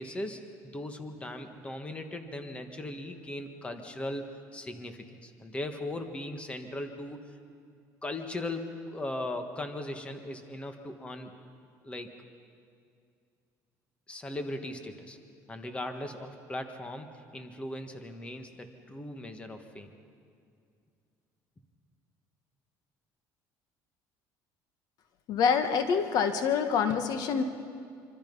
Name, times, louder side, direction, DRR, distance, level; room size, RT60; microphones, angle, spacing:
voice 1, 0.0-4.2 4.5-7.2 8.0-11.3 11.8-12.1 14.1-15.2 15.5-19.9, left 1 dB, 15° left, 6 dB, 1.6 m, -38 dB
voice 2, 25.3-27.4, left 6 dB, 60° left, 8 dB, 1.4 m, -26 dB
26.0 x 25.5 x 5.5 m, 2.3 s
cardioid pair, 130°, 8 cm